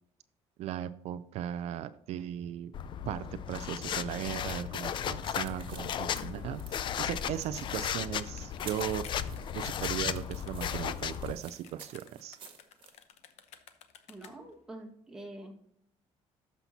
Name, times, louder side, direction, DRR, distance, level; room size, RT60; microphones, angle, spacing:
voice 1, 0.6-2.7 3.1-9.0 9.5-12.4, right 11 dB, 70° right, 13 dB, 0.4 m, -37 dB
sound 1, 2.7-11.3, left 9 dB, 45° left, 0.4 m, -35 dB
sound 2, 4.9-13.0, right 7 dB, 45° right, 1.5 m, -52 dB
sound 3, 7.0-14.6, left 9 dB, 75° left, 0.8 m, -55 dB
voice 2, 14.1-15.6, right 1 dB, 5° right, -1 dB, 1.7 m, -46 dB
13.0 x 5.7 x 2.8 m, 0.76 s
cardioid pair, 135°, 11 cm